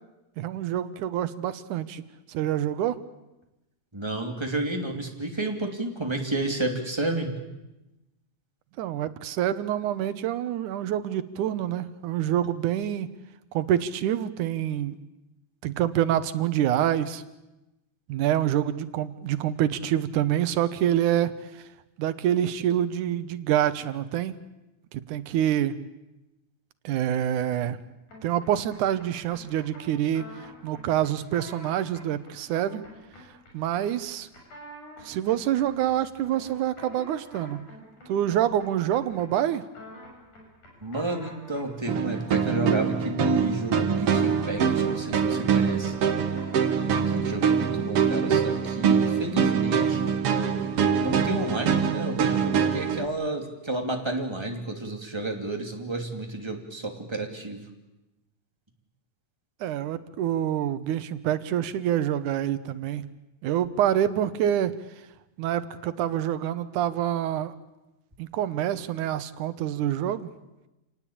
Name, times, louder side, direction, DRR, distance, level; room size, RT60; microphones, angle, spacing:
voice 1, 0.4-2.0 2.3-3.0 8.8-13.1 13.5-15.0 15.6-17.2 18.1-21.7 22.0-24.3 24.9-25.8 26.8-27.8 28.2-30.3 30.6-32.8 33.5-34.3 35.0-37.7 38.1-39.6 59.6-63.1 63.4-64.8 65.4-67.6 68.2-70.3, right 11 dB, 90° right, 13 dB, 2.5 m, -26 dB
voice 2, 3.9-7.3 40.8-45.9 46.9-50.1 51.0-57.6, right 2 dB, 10° right, 3 dB, 2.5 m, -31 dB
sound 1, 28.1-47.3, equal, 90° left, 8.5 m, -48 dB
sound 2, 41.9-53.1, right 7 dB, 55° right, 2.1 m, -24 dB
28.0 x 18.5 x 8.7 m, 0.99 s
omnidirectional pair, 3.4 m